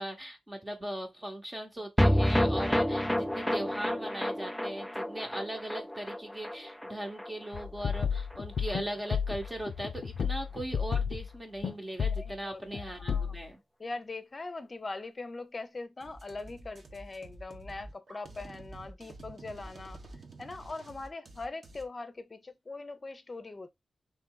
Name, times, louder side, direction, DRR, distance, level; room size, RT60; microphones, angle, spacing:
voice 1, 0.0-13.6, right 1 dB, 20° right, 1.0 m, -39 dB
sound 1, 2.0-8.4 8.7-8.8 9.0-9.1, equal, 5° left, 0.3 m, -30 dB
sound 2, 7.5-11.3 11.6-11.7 12.0-12.3 12.7-13.4, left 7 dB, 80° left, 0.5 m, -32 dB
voice 2, 12.2-13.3 13.8-20.0 20.4-23.7, left 3 dB, 35° left, 0.7 m, -41 dB
sound 3, 16.0-21.8, right 2 dB, 50° right, 1.0 m, -49 dB
3.9 x 3.2 x 3.8 m
wide cardioid pair, 125°, 0 cm